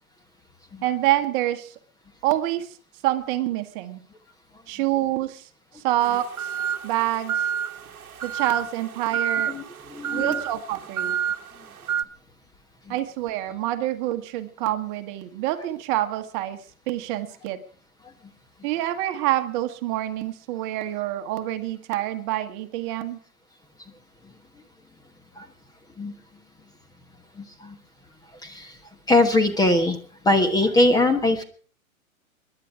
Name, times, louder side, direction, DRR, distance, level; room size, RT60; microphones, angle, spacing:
voice 1, 0.8-1.7 2.2-2.8 3.0-4.0 4.7-5.5 5.7-6.5 6.8-7.5 8.2-9.6 10.1-11.1 12.9-16.6 16.9-17.6 18.6-23.2, right 14 dB, 35° right, 9 dB, 1.5 m, -27 dB
sound 1, 6.0-12.0, right 8 dB, 85° right, 1.1 m, -29 dB
voice 2, 9.9-10.4 25.4-25.5 26.0-26.1 27.6-27.7 28.4-28.7 29.1-30.0 30.2-31.4, left 2 dB, 10° left, 5 dB, 1.2 m, -21 dB
26.0 x 11.0 x 4.9 m, 0.43 s
hypercardioid pair, 125°, 42 cm